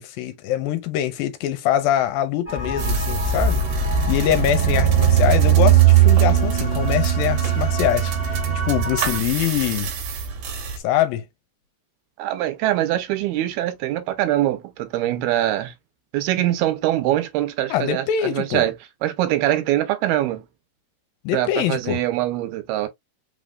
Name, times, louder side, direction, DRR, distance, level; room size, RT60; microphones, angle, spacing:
voice 1, 0.0-3.6 4.1-8.4 8.6-9.9 10.8-11.2 17.7-18.6 21.3-22.0, left 11 dB, 80° left, 2.3 m, -23 dB
sound 1, 2.5-9.2, left 3 dB, 20° left, 0.3 m, -29 dB
sound 2, 2.8-10.8, right 11 dB, 65° right, 2.4 m, -20 dB
voice 2, 12.2-15.7 16.1-18.7 19.0-20.4 21.3-22.9, right 14 dB, 85° right, 2.8 m, -23 dB
5.8 x 3.5 x 2.3 m
omnidirectional pair, 4.4 m